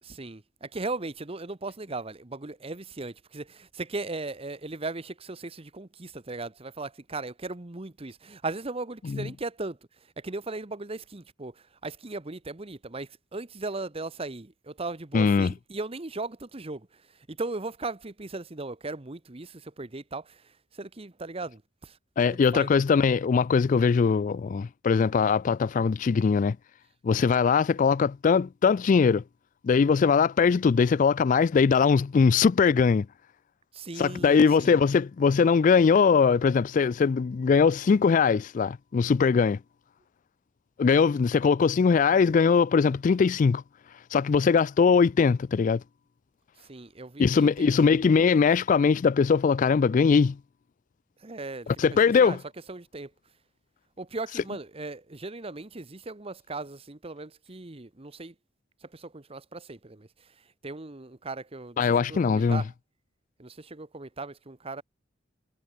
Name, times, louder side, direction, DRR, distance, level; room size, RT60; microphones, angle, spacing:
voice 1, 0.0-22.0 22.5-22.7 33.7-34.8 46.6-48.1 51.2-51.7 52.0-52.4 52.7-53.1 54.0-58.3 58.8-61.8 62.1-62.7 63.4-64.8, right 3 dB, 30° right, 1.0 m, -38 dB
voice 2, 15.1-15.5 22.2-26.6 27.0-29.2 29.6-33.1 34.0-39.6 40.8-43.6 44.1-45.8 47.2-50.4 51.8-52.4 61.8-62.6, left 5 dB, 40° left, 0.3 m, -21 dB
head